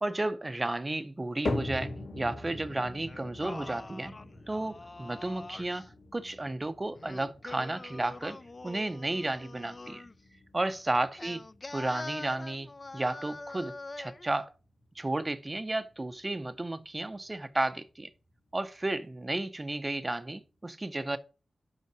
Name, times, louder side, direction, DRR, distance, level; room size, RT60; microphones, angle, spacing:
voice 1, 0.0-4.1 4.5-8.4 8.6-10.1 10.5-11.4 11.7-14.5 15.0-18.1 18.5-21.2, right 2 dB, 15° right, 0.6 m, -33 dB
sound 1, 1.4-17.8 18.1-18.6 19.2-19.3 20.1-20.2, left 2 dB, 70° left, 2.2 m, -43 dB
Singing, 3.1-5.9 7.0-10.2 11.2-14.3, left 2 dB, 25° left, 0.4 m, -44 dB
5.7 x 5.5 x 5.7 m
wide cardioid pair, 175°, 0 cm